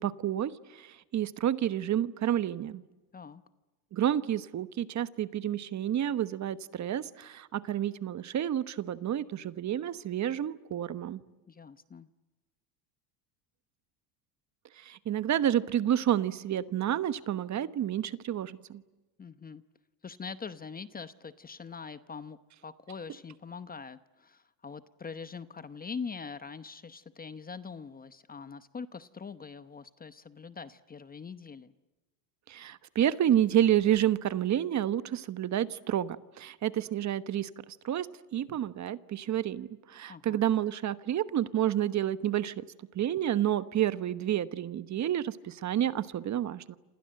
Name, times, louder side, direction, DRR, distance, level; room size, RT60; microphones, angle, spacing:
voice 1, 0.0-2.8 3.9-11.2 14.8-18.8 32.5-37.5 37.8-42.6 42.9-46.8, right 11 dB, 35° right, 14 dB, 1.2 m, -29 dB
voice 2, 11.5-12.1 19.2-19.6 20.0-31.7 40.1-40.4, left 5 dB, 20° left, 13 dB, 0.9 m, -43 dB
28.5 x 27.0 x 7.8 m, 1.2 s
supercardioid pair, 115°, 47 cm